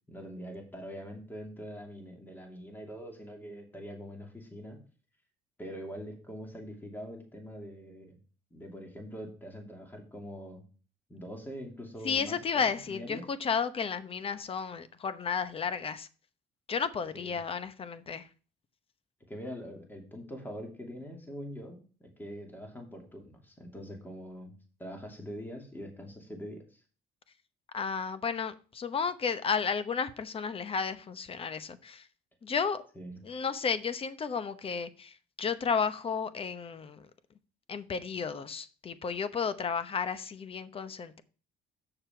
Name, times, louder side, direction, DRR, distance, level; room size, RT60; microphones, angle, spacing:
voice 1, 0.1-4.8 5.6-8.2 8.5-10.6 11.1-13.3 17.1-17.3 19.3-24.5 24.8-26.8 32.9-33.2, equal, 10° left, 2.6 m, -43 dB
voice 2, 12.0-16.1 16.7-18.3 27.7-32.1 32.4-32.9 33.2-37.0 37.7-41.2, left 6 dB, 35° left, 0.9 m, -33 dB
7.8 x 6.7 x 4.4 m
cardioid pair, 110°, 17 cm